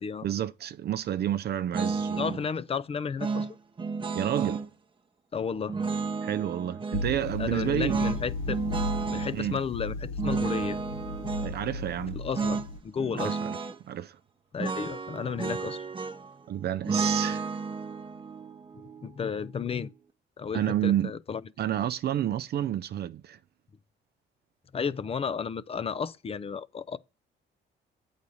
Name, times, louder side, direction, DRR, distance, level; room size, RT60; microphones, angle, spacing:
voice 1, 0.2-2.4 4.1-4.7 6.2-8.0 9.3-9.6 11.4-12.2 13.1-13.6 13.8-14.2 16.5-17.5 20.5-21.1 21.6-23.4, right 11 dB, 55° right, 0.4 m, -30 dB
sound 1, 1.7-2.4 3.2-4.7 5.7-7.1 7.9-9.4 10.2-11.5 12.3-12.7 13.0-13.8 14.6-16.4 16.9-19.9, right 4 dB, 25° right, 0.7 m, -32 dB
voice 2, 2.2-3.5 5.3-5.7 7.4-8.6 9.1-10.8 12.2-13.4 14.5-15.8 19.0-19.9 20.4-21.4 24.7-27.0, left 6 dB, 30° left, 0.4 m, -33 dB
sound 2, 6.9-12.8, left 2 dB, 80° left, 0.8 m, -35 dB
8.3 x 4.0 x 4.8 m
cardioid pair, 90°, 20 cm